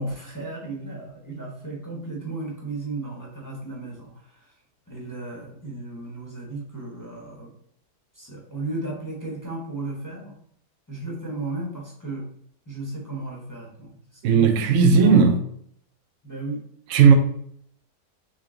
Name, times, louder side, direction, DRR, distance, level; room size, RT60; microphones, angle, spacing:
voice 1, 0.0-4.6 4.9-7.5 8.1-10.4 10.9-12.3 12.7-15.3 16.2-16.6 17.0-17.1, right 2 dB, 15° left, 0.7 m, -34 dB
voice 2, 14.2-15.4 16.9-17.1, right 5 dB, 75° right, 0.7 m, -15 dB
3.8 x 3.4 x 3.7 m
omnidirectional pair, 1.8 m